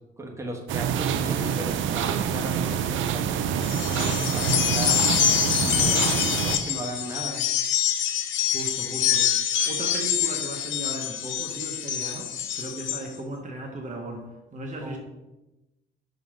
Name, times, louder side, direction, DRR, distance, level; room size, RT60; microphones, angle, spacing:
voice 1, 0.2-2.8 3.1-5.1 5.6-7.4 14.8-15.0, right 1 dB, 15° right, 1 dB, 1.3 m, -36 dB
sound 1, 0.7-6.6, right 8 dB, 75° right, 0.5 m, -26 dB
sound 2, 3.6-13.0, left 10 dB, 75° left, 0.8 m, -26 dB
voice 2, 8.5-15.0, right 2 dB, 40° right, 1 dB, 1.1 m, -37 dB
5.8 x 3.9 x 4.9 m, 0.98 s
cardioid pair, 90°, 20 cm